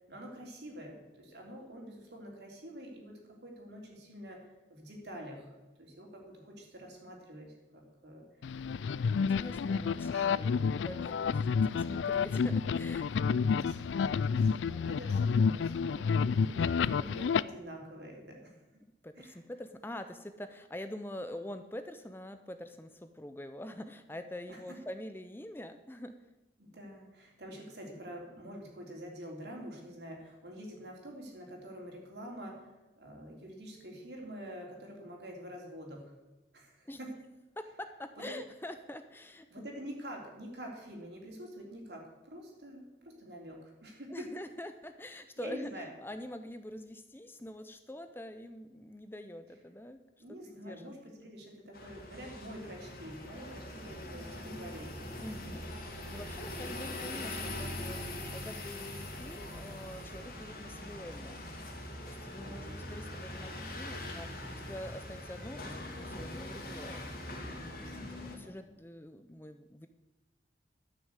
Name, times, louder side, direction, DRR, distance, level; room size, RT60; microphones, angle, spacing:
voice 1, 0.1-8.8 9.2-10.7 13.2-18.6 19.2-19.4 24.5-24.8 26.6-36.1 36.5-37.1 38.2-38.4 39.5-44.3 45.4-45.9 50.2-55.7 62.4-62.8 67.7-68.7, equal, 65° right, 0 dB, 3.3 m, -47 dB
sound 1, 8.4-17.4, left 5 dB, 80° left, 0.4 m, -29 dB
voice 2, 9.2-10.3 10.8-13.2 19.0-26.1 36.9-37.0 37.6-39.5 44.1-45.7 46.0-50.0 50.3-51.0 51.2-51.3 55.2-61.4 62.1-67.0 67.6-68.0 68.3-69.9, left 1 dB, 10° left, 9 dB, 0.5 m, -45 dB
sound 2, 51.7-68.4, left 1 dB, 55° left, 2.6 m, -42 dB
12.5 x 6.4 x 8.1 m, 1.1 s
head